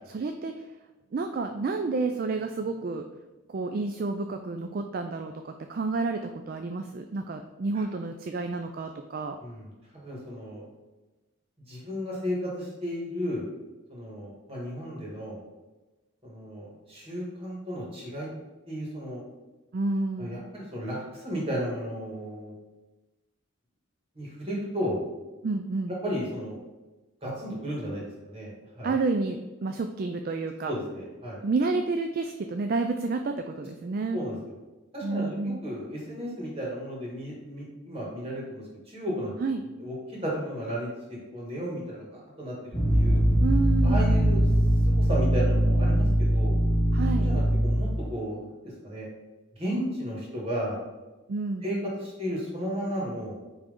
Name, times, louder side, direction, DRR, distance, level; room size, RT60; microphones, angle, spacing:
voice 1, 0.1-0.7 1.1-3.1 3.5-9.4 19.7-20.4 25.4-25.9 28.8-30.7 31.4-34.2 35.0-35.6 39.4-39.6 43.4-44.1 46.9-47.3 51.3-51.6, right 3 dB, 45° right, 6 dB, 0.3 m, -30 dB
voice 2, 9.4-10.6 11.7-13.4 13.9-15.4 16.2-18.3 18.7-19.2 20.2-22.5 24.2-25.0 26.0-26.6 27.2-29.0 30.6-31.4 34.1-34.4 34.9-39.3 39.8-43.2 43.8-44.4 44.9-46.5 47.2-48.4 48.8-49.1 49.5-50.8 51.6-53.4, equal, 30° right, -4 dB, 2.0 m, -34 dB
sound 1, 42.7-48.1, equal, 5° left, 1.8 m, -22 dB
8.9 x 3.4 x 3.7 m, 1.1 s
head